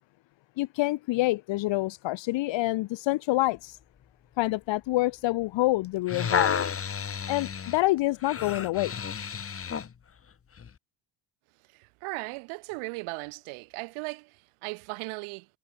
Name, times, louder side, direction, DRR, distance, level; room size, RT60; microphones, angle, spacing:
voice 1, 0.6-3.8 4.4-6.7 7.3-8.9, left 19 dB, 60° left, 1.1 m, -27 dB
sound 1, 5.8-9.9 10.6-10.7, left 7 dB, 25° left, 1.3 m, -31 dB
voice 2, 11.7-15.5, right 29 dB, 80° right, 3.4 m, -37 dB
supercardioid pair, 80°, 49 cm